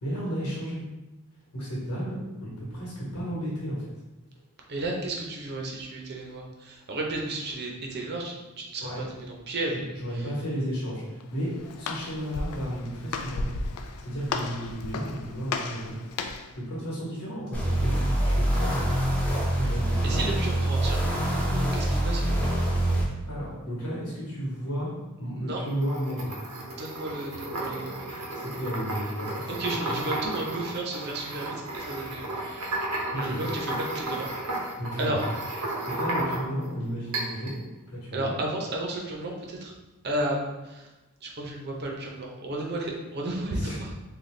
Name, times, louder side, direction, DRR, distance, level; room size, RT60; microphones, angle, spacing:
voice 1, 0.0-0.8 1.5-3.8 8.8-9.0 9.7-13.4 14.0-15.9 16.5-18.8 19.5-20.3 23.2-24.9 25.2-26.3 28.1-30.0 32.0-32.2 32.5-32.8 33.1-33.4 34.8-35.3 35.9-37.5 37.9-38.3 43.5-43.8, equal, 85° left, -6 dB, 1.3 m, -33 dB
voice 2, 4.7-9.8 10.2-10.3 20.0-22.5 25.5-25.6 26.8-28.1 29.6-32.7 33.2-34.3 35.0-35.2 38.1-39.7 40.0-40.9 41.2-43.9, right 2 dB, 50° right, 0 dB, 0.7 m, -33 dB
Walk footsteps, 11.2-16.6, left 4 dB, 70° left, 0.3 m, -35 dB
sound 1, 17.5-23.0, right 1 dB, 5° left, 0.6 m, -25 dB
sound 2, 25.7-36.7 37.1-37.6, right 1 dB, 85° right, 0.8 m, -33 dB
4.0 x 2.3 x 3.2 m, 1.1 s
head